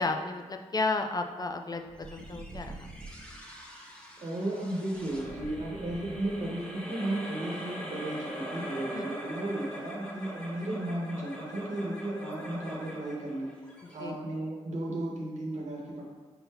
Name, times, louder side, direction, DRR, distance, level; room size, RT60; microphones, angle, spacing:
voice 1, 0.0-2.9 8.9-9.1 14.0-14.1, left 3 dB, 35° left, 5 dB, 0.3 m, -32 dB
sound 1, 1.8-3.4 4.9-6.8, right 2 dB, 35° right, 0.6 m, -46 dB
sound 2, 2.0-14.7, equal, 10° left, 0.8 m, -43 dB
voice 2, 4.2-13.5 13.9-16.0, right 1 dB, 85° right, -3 dB, 1.0 m, -34 dB
4.2 x 3.8 x 2.8 m, 1.3 s
cardioid pair, 65°, 12 cm